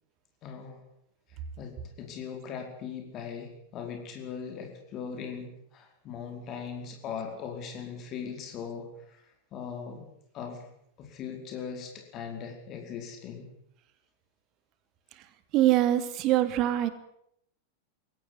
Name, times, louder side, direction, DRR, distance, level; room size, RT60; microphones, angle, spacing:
voice 1, 0.4-0.8 1.6-9.2 9.5-10.0 10.3-10.6 11.0-13.4, left 6 dB, 35° left, 3 dB, 4.8 m, -39 dB
voice 2, 15.5-16.9, right 13 dB, 40° right, 12 dB, 2.6 m, -23 dB
22.5 x 17.0 x 10.0 m, 0.75 s
figure-of-eight pair, 90°, 0 cm